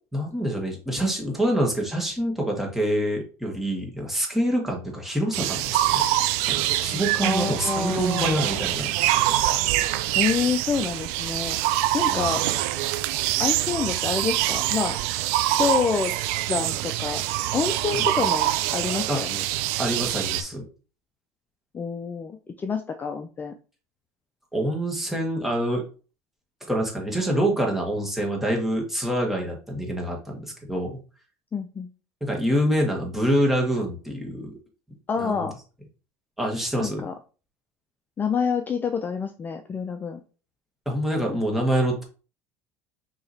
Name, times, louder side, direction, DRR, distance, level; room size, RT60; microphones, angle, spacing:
voice 1, 0.1-6.0 6.4-8.9 12.1-12.3 17.9-18.1 19.1-19.2 19.8-20.6 24.5-25.8 26.7-31.0 32.2-34.6 35.2-35.5 36.4-37.1 40.8-42.1, equal, 5° right, -1 dB, 1.6 m, -26 dB
sound 1, 5.3-20.4, right 14 dB, 80° right, 0.3 m, -25 dB
voice 2, 7.2-8.6 10.1-11.6 11.9-12.4 13.4-15.0 15.5-16.1 16.5-17.2 17.5-19.4 21.7-23.5 31.5-31.9 35.1-35.6 36.8-37.1 38.2-40.2, left 5 dB, 25° left, 7 dB, 0.4 m, -27 dB
4.6 x 2.9 x 2.7 m, 0.36 s
supercardioid pair, 90°, 7 cm